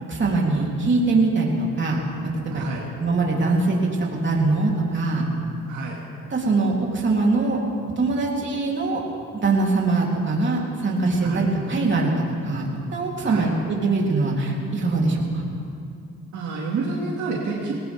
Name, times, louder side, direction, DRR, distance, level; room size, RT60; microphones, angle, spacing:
voice 1, 0.1-2.0 2.4-2.7 3.0-5.3 6.3-7.6 8.0-9.0 9.3-12.7 12.9-15.4, right 3 dB, 40° right, -2 dB, 3.4 m, -22 dB
voice 2, 2.5-2.9 5.7-6.0 11.2-11.5 13.2-13.5 16.3-17.7, right 4 dB, 70° right, -3 dB, 2.3 m, -29 dB
20.0 x 18.5 x 3.6 m, 2.4 s
cardioid pair, 90°, 30 cm